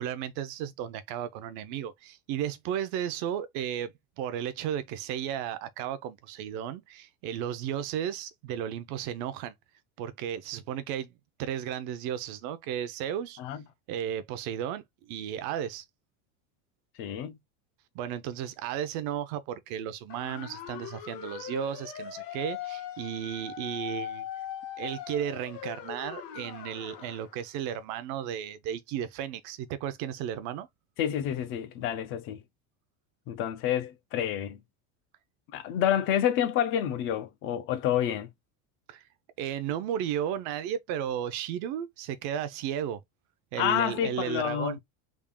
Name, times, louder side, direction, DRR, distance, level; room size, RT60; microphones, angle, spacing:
voice 1, 0.0-9.5 10.0-11.1 11.4-13.4 13.9-15.8 17.9-24.3 24.8-30.7 38.9-39.0 39.4-43.0 43.5-44.8, right 10 dB, 45° right, 0.6 m, -34 dB
voice 2, 17.0-17.4 31.0-32.4 33.3-34.6 35.5-38.3 43.6-44.8, left 10 dB, 30° left, 0.4 m, -28 dB
sound 1, 20.1-27.3, left 10 dB, 50° left, 0.9 m, -40 dB
3.6 x 2.3 x 3.5 m
supercardioid pair, 165°, 42 cm